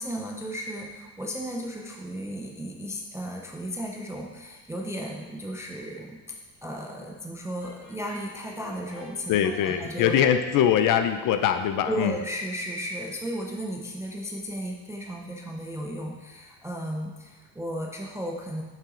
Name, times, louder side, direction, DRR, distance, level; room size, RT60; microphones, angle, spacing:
voice 1, 0.0-6.4 6.6-10.1 11.9-18.6, equal, 5° right, 0 dB, 0.3 m, -34 dB
Brass instrument, 7.6-10.9, left 2 dB, 90° left, 2.3 m, -47 dB
voice 2, 9.3-12.1, left 9 dB, 45° left, 9 dB, 0.5 m, -22 dB
6.9 x 5.7 x 3.8 m, 1.2 s
cardioid pair, 145°, 45 cm